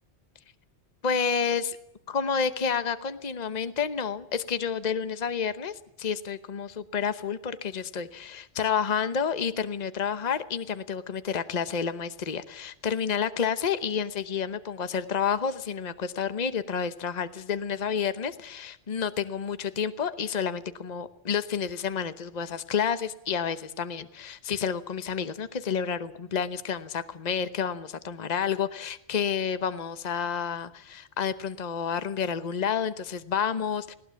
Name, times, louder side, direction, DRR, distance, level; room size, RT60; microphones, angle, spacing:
voice 1, 1.0-1.8 2.1-33.9, left 7 dB, 40° left, 12 dB, 1.0 m, -30 dB
20.0 x 18.5 x 7.1 m, 0.80 s
omnidirectional pair, 1.1 m